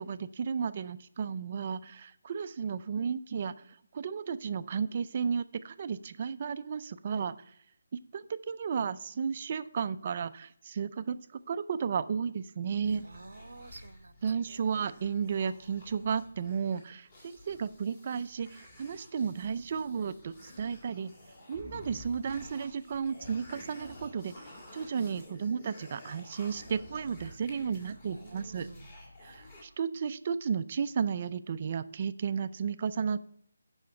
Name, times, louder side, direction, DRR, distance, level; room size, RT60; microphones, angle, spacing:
voice 1, 0.0-3.7 3.9-7.4 8.1-13.1 14.2-21.1 21.5-24.5 24.7-28.7 29.2-33.3, right 6 dB, 30° right, 12 dB, 0.4 m, -33 dB
sound 1, 12.8-29.6, left 1 dB, 25° left, 2.0 m, -51 dB
voice 2, 13.0-14.2 14.5-14.9 28.1-28.9, right 3 dB, 80° right, 13 dB, 0.8 m, -50 dB
7.5 x 5.7 x 7.0 m, 0.70 s
hypercardioid pair, 175°, 0 cm